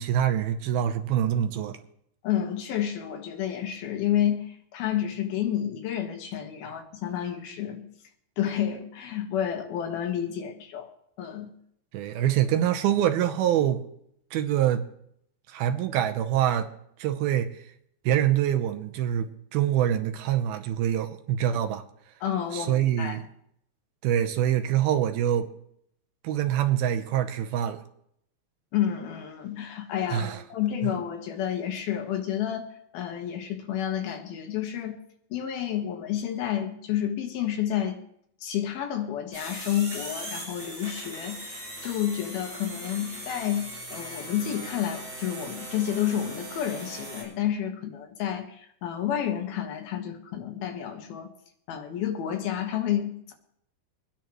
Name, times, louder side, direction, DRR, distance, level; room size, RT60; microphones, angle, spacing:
voice 1, 0.0-1.8 11.9-13.8 14.3-14.9 15.5-16.7 17.0-17.5 18.1-21.8 22.5-23.2 24.0-25.5 26.2-27.8 30.1-30.4, right 11 dB, 85° right, 2.7 m, -25 dB
voice 2, 2.2-7.9 8.4-10.9 11.2-11.6 22.2-23.2 28.7-35.0 35.3-38.0 38.4-43.6 43.9-51.3 51.7-53.3, left 10 dB, 80° left, 3.2 m, -30 dB
sound 1, 39.3-47.2, right 1 dB, 15° right, 5.5 m, -39 dB
24.5 x 10.0 x 3.1 m
omnidirectional pair, 4.4 m